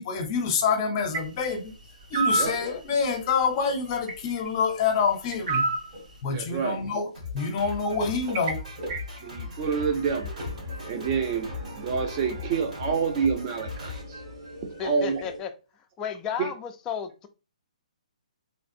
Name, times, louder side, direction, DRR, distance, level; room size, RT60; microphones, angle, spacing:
voice 1, 0.0-1.6 2.1-5.6 6.2-8.6, left 5 dB, 35° left, 0.7 m, -26 dB
sound 1, 2.1-2.5 5.5-5.9, right 2 dB, 85° right, 1.2 m, -24 dB
sound 2, 5.9-6.4 6.6-15.4, right 1 dB, 50° right, 1.4 m, -42 dB
voice 2, 6.3-6.8 8.9-14.2 14.8-15.2, right 6 dB, 30° right, 0.7 m, -28 dB
Drum kit, 7.1-14.9, left 4 dB, 65° right, 1.8 m, -39 dB
voice 3, 14.8-15.5 16.0-17.3, left 7 dB, 15° left, 0.3 m, -33 dB
3.2 x 2.3 x 2.6 m
hypercardioid pair, 150°, 4 cm